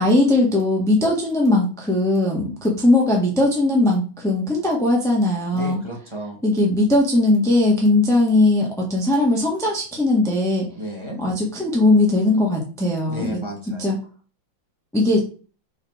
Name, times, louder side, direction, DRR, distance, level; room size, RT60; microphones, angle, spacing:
voice 1, 0.0-5.8 6.4-10.7 11.2-13.4 13.8-14.0 14.9-15.2, left 2 dB, ahead, -2 dB, 1.4 m, -19 dB
voice 2, 5.5-6.4 10.8-11.2 13.1-13.9, equal, 15° right, -1 dB, 1.7 m, -32 dB
5.4 x 4.2 x 6.2 m, 0.38 s
omnidirectional pair, 2.2 m